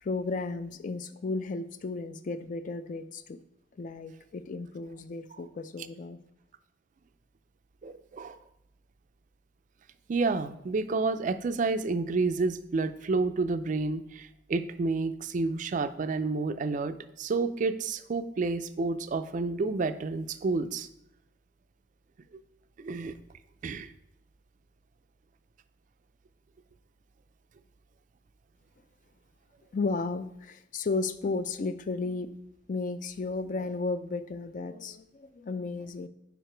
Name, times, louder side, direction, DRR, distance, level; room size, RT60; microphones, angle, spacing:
voice 1, 0.0-3.4 3.8-6.2 29.7-32.3 32.7-36.1, left 3 dB, 45° left, 12 dB, 0.4 m, -34 dB
voice 2, 7.8-8.4 10.1-20.9 22.8-23.1 23.6-23.9, right 3 dB, 45° right, 11 dB, 0.3 m, -30 dB
5.0 x 4.8 x 4.4 m, 0.82 s
head